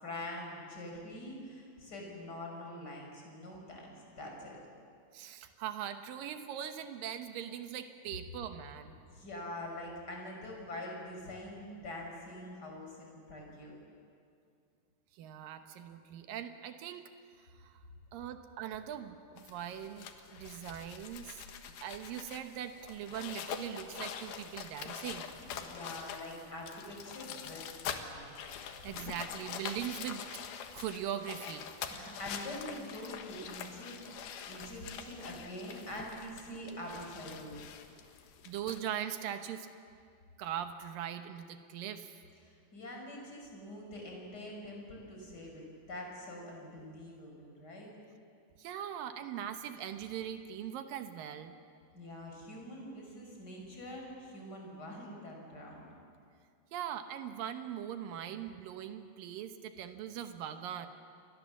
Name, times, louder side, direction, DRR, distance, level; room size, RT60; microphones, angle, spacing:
voice 1, 0.0-4.6 9.1-13.8 25.4-28.3 31.9-37.6 42.4-47.9 51.9-55.9, left 1 dB, 20° left, 0 dB, 5.5 m, -45 dB
voice 2, 5.1-9.0 15.1-17.1 17.6-17.7 18.1-25.3 28.6-30.2 30.7-31.7 38.5-39.7 40.4-42.2 48.6-51.5 56.7-60.9, right 10 dB, 75° right, 8 dB, 2.1 m, -41 dB
sound 1, 19.4-38.8, left 8 dB, 65° left, 2.8 m, -45 dB
29.0 x 23.5 x 7.3 m, 2.3 s
omnidirectional pair, 5.3 m